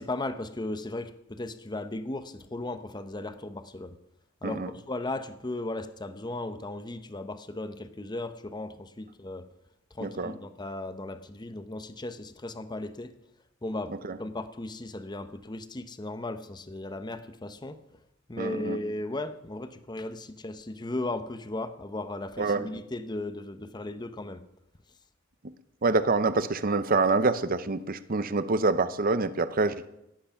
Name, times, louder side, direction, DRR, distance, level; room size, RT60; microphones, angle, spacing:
voice 1, 0.0-4.0 4.4-9.5 9.9-13.1 13.6-17.8 18.3-24.4, left 2 dB, 20° left, 10 dB, 0.8 m, -36 dB
voice 2, 10.0-10.3 14.1-14.2 18.4-18.8 22.4-22.7 25.8-29.9, right 3 dB, 45° right, 14 dB, 0.7 m, -26 dB
17.5 x 8.0 x 5.8 m, 0.84 s
head